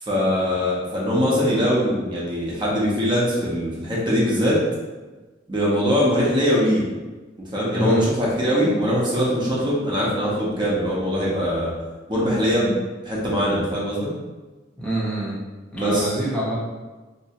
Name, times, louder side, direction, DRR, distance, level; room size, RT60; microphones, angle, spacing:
voice 1, 0.0-4.6 5.5-6.8 7.5-11.7 12.1-12.8 13.0-14.1 15.7-16.1, equal, 25° right, -6 dB, 0.8 m, -22 dB
voice 2, 14.8-15.4 15.7-16.6, right 1 dB, 5° left, -8 dB, 0.8 m, -25 dB
3.3 x 2.9 x 2.9 m, 1.2 s
head